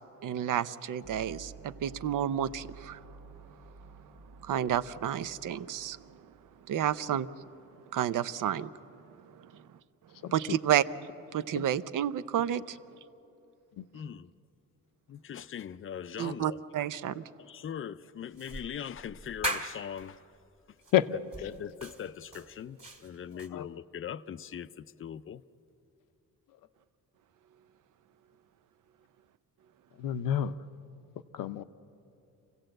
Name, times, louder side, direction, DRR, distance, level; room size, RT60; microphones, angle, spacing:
voice 1, 0.2-3.0 4.4-6.0 6.7-7.3 7.9-8.7 10.3-10.8 11.3-12.8 16.2-17.2, right 10 dB, 70° right, 0.7 m, -30 dB
sound 1, 1.0-7.5, right 4 dB, 85° right, 1.9 m, -52 dB
voice 2, 10.2-10.6 11.5-11.7 13.8-13.9 20.9-21.1 23.2-23.7 30.0-30.5 31.3-31.6, left 11 dB, 85° left, 0.7 m, -30 dB
voice 3, 13.9-14.3 15.1-16.6 17.4-20.2 21.4-25.4, left 8 dB, 40° left, 0.5 m, -41 dB
sound 2, 18.4-20.0 20.8-21.0 21.3-23.5, right 1 dB, 20° right, 2.0 m, -38 dB
26.5 x 16.0 x 7.8 m
cardioid pair, 135°, 33 cm